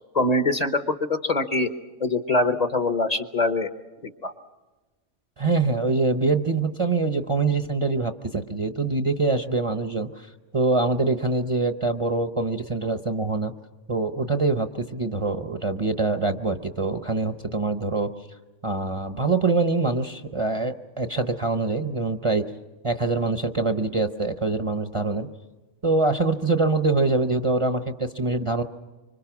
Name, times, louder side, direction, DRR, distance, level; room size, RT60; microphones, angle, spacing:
voice 1, 0.1-1.7 2.0-3.7 4.0-4.3, left 2 dB, 35° left, 9 dB, 1.0 m, -23 dB
voice 2, 5.4-10.3 10.5-13.5 13.9-18.1 18.6-22.5 22.8-25.3 25.8-28.6, right 3 dB, 30° right, 7 dB, 0.8 m, -24 dB
26.0 x 25.0 x 6.0 m, 1.2 s
omnidirectional pair, 1.2 m